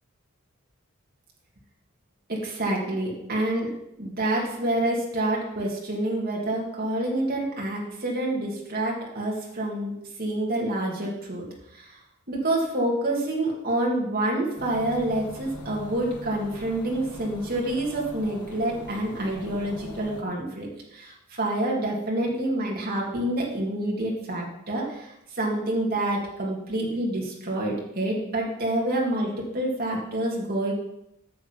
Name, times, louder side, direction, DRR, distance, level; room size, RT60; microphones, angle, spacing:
voice 1, 2.3-9.9 10.2-11.5 11.7-11.9 12.3-30.7, right 1 dB, 45° right, -2 dB, 2.2 m, -27 dB
sound 1, 14.6-20.2, left 1 dB, 90° left, 1.1 m, -42 dB
9.3 x 6.4 x 5.2 m, 0.83 s
head